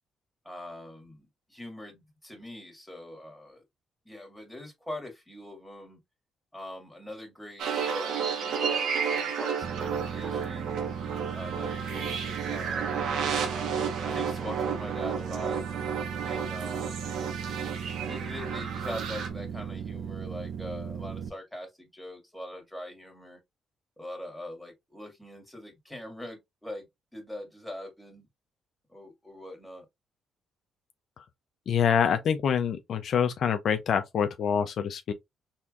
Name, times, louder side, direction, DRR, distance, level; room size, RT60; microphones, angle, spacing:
voice 1, 0.4-3.6 4.1-6.0 6.5-10.8 11.3-15.6 16.2-17.2 18.1-23.4 24.0-28.3 28.9-29.9, left 1 dB, 5° left, 2.0 m, -42 dB
sound 1, 7.6-19.3, right 6 dB, 80° right, 1.1 m, -32 dB
sound 2, 9.6-21.3, right 7 dB, 60° right, 0.9 m, -37 dB
voice 2, 31.7-35.1, left 7 dB, 65° left, 0.5 m, -26 dB
4.3 x 3.5 x 2.4 m
cardioid pair, 90°, 0 cm